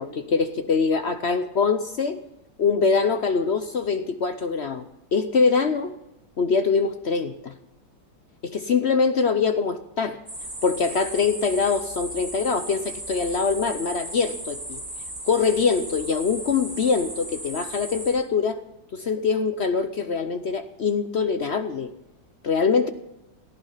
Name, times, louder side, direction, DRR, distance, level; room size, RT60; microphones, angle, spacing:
voice 1, 0.0-2.2 2.6-4.8 5.1-5.9 6.4-7.5 8.4-10.2 10.6-14.8 15.2-18.6 18.9-21.9 22.4-22.9, left 5 dB, 55° left, 10 dB, 0.7 m, -23 dB
sound 1, 10.3-18.1, right 1 dB, 35° right, 5.7 m, -36 dB
17.5 x 14.5 x 5.6 m, 0.93 s
omnidirectional pair, 2.0 m